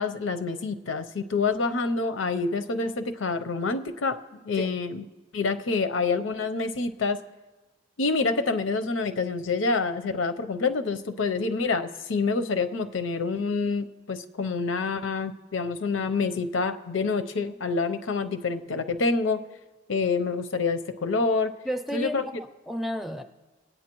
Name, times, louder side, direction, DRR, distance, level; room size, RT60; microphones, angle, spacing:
voice 1, 0.0-5.0 5.3-7.2 8.0-19.4 19.9-21.5 21.9-22.2, left 4 dB, 90° left, 9 dB, 0.7 m, -27 dB
voice 2, 21.6-23.2, equal, ahead, 7 dB, 0.5 m, -32 dB
21.0 x 9.1 x 3.0 m, 1.2 s
head